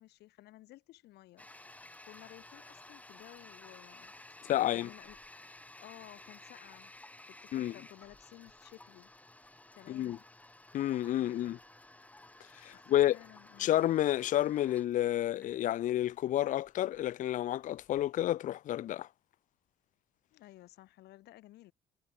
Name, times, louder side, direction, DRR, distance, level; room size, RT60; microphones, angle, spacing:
voice 1, 0.0-1.5 2.0-5.2 5.8-6.9 7.3-9.1 9.7-10.2 12.6-13.7 20.3-21.7, left 16 dB, 75° left, 2.7 m, -55 dB
Toilet flush, 1.4-18.1, left 2 dB, 10° left, 1.7 m, -55 dB
voice 2, 4.4-4.9 7.5-7.7 9.9-10.2 10.7-11.6 12.6-13.2 13.6-19.1, left 13 dB, 50° left, 0.5 m, -30 dB
cardioid pair, 110°, 17 cm